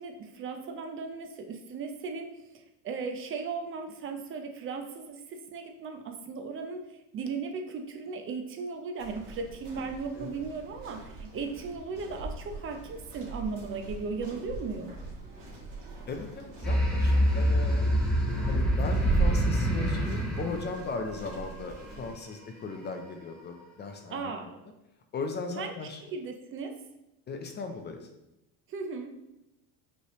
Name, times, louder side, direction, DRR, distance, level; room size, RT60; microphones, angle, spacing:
voice 1, 0.0-14.9 24.1-24.5 25.6-25.7 26.0-26.8 28.7-29.2, right 4 dB, 35° right, 5 dB, 0.5 m, -37 dB
sound 1, 9.0-22.1, right 3 dB, 85° right, 1.7 m, -38 dB
voice 2, 16.1-17.9 18.5-24.5 25.1-26.0 27.3-28.1, left 4 dB, 30° left, 5 dB, 0.5 m, -38 dB
sound 2, 16.6-21.6, equal, ahead, 0.9 m, -26 dB
5.4 x 3.3 x 3.0 m, 0.92 s
cardioid pair, 135°, 37 cm